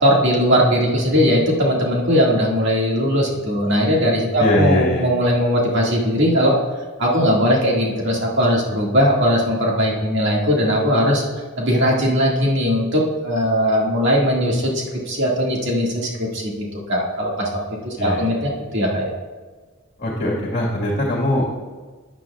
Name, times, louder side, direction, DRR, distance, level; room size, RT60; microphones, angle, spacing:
voice 1, 0.0-6.6 7.0-11.2 11.6-17.5 17.8-19.1, equal, 55° right, -3 dB, 1.9 m, -19 dB
voice 2, 4.4-5.0 18.0-18.4 20.0-21.5, left 1 dB, 40° left, -3 dB, 1.7 m, -21 dB
13.0 x 9.1 x 2.4 m, 1.4 s
head